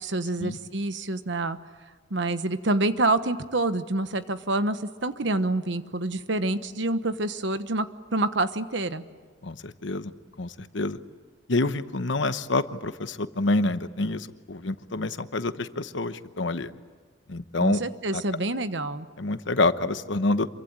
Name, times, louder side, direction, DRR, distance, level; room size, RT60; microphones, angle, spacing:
voice 1, 0.0-1.6 2.1-7.9 8.1-9.0 17.6-19.1, right 2 dB, 65° right, 11 dB, 1.2 m, -27 dB
voice 2, 9.4-10.1 10.4-11.0 11.5-16.7 17.3-17.8 18.1-18.2 19.2-20.5, left 2 dB, 65° left, 11 dB, 1.1 m, -27 dB
27.0 x 24.0 x 8.9 m, 1.5 s
head